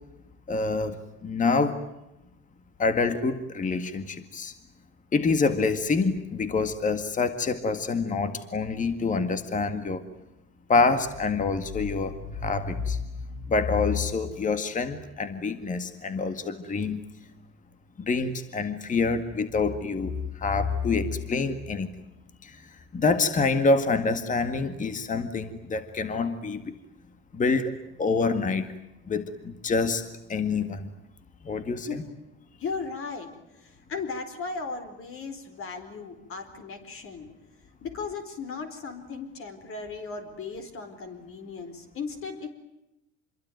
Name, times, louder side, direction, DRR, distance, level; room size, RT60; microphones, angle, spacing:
voice 1, 0.5-1.8 2.8-4.5 5.1-10.0 10.7-17.0 18.0-21.9 22.4-26.8 27.3-28.7 29.1-30.9 31.4-32.0, left 4 dB, 20° left, 10 dB, 1.9 m, -27 dB
voice 2, 32.6-37.3 37.8-42.5, left 4 dB, 35° left, 7 dB, 4.3 m, -36 dB
26.5 x 22.5 x 9.3 m, 0.89 s
supercardioid pair, 125°, 36 cm